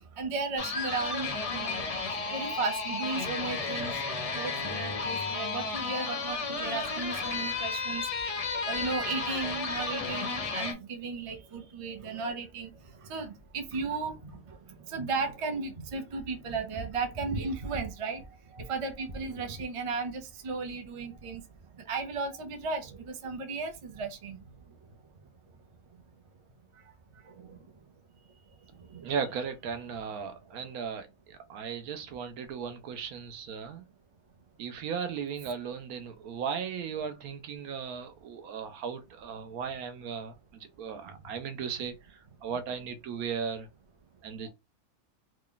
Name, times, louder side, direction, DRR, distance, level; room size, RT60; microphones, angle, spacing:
voice 1, 0.2-1.8 2.3-3.9 4.3-8.0 8.6-12.7 13.1-14.6 14.9-18.2 18.5-21.4 21.9-24.4 27.4-27.5 28.9-29.1, right 4 dB, 40° right, 0.5 m, -35 dB
sound 1, 0.6-10.7, left 4 dB, 55° left, 0.4 m, -33 dB
voice 2, 29.0-33.8 34.6-43.7 44.2-44.5, right 6 dB, 75° right, 1.1 m, -36 dB
3.1 x 2.4 x 3.7 m
omnidirectional pair, 1.6 m